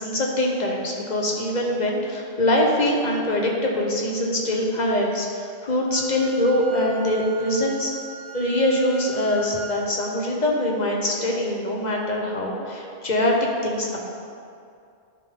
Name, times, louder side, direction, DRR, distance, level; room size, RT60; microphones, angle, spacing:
voice 1, 0.0-7.9 8.3-13.4 13.6-14.0, left 1 dB, 40° left, -1 dB, 1.2 m, -23 dB
Wind instrument woodwind instrument, 5.9-9.7, right 2 dB, 15° left, 1.6 m, -40 dB
11.0 x 5.5 x 3.8 m, 2.4 s
omnidirectional pair, 1.2 m